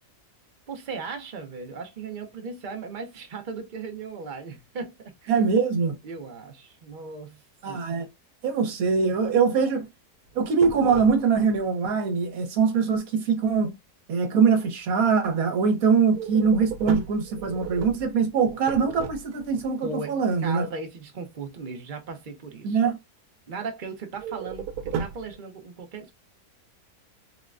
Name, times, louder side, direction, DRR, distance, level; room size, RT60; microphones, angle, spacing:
voice 1, 0.7-5.3 6.0-7.4 7.7-7.8 19.8-22.8 23.5-26.1, right 4 dB, 50° right, 0.6 m, -37 dB
voice 2, 5.3-5.9 7.6-8.1 8.4-9.9 10.3-13.7 14.1-20.7 22.6-23.0, right 5 dB, 70° right, 1.3 m, -23 dB
sound 1, 10.3-11.6 16.1-19.7 24.2-25.4, right 7 dB, 90° right, 1.1 m, -35 dB
4.0 x 2.1 x 2.4 m
omnidirectional pair, 1.6 m